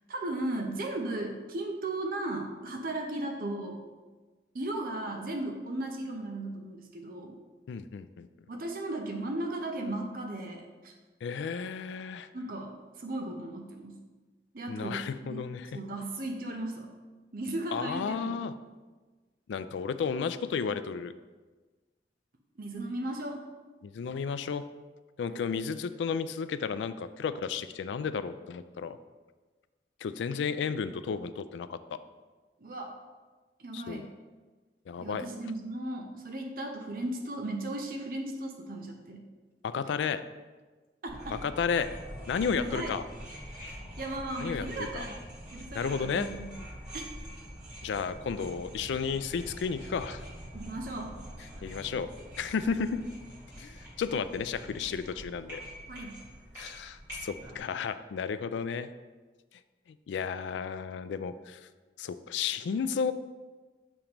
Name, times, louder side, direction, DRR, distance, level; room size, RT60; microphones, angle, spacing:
voice 1, 0.1-3.8 4.5-7.4 8.5-10.9 12.3-14.0 14.5-15.4 15.7-16.9 17.3-18.4 22.6-23.4 25.3-25.5 32.6-33.0 33.6-34.1 35.0-39.3 41.0-41.4 42.6-43.0 44.0-45.2 45.5-46.6 46.9-47.1 50.5-51.5 55.9-56.2, right 1 dB, 50° right, 3 dB, 0.6 m, -36 dB
voice 2, 7.7-8.3 11.2-12.3 14.7-15.8 17.7-18.5 19.5-21.1 23.8-24.7 25.2-29.0 30.0-31.8 33.7-34.1 34.9-35.3 39.6-40.2 41.4-41.9 42.3-43.0 44.4-44.7 44.9-45.1 45.7-46.3 47.8-50.2 51.6-52.1 52.4-53.0 53.6-55.6 56.6-58.9 60.1-61.6 62.0-63.1, left 6 dB, 90° left, 13 dB, 0.3 m, -33 dB
sound 1, 41.1-57.6, equal, 15° right, 2.0 m, -45 dB
7.1 x 3.0 x 5.1 m, 1.3 s
head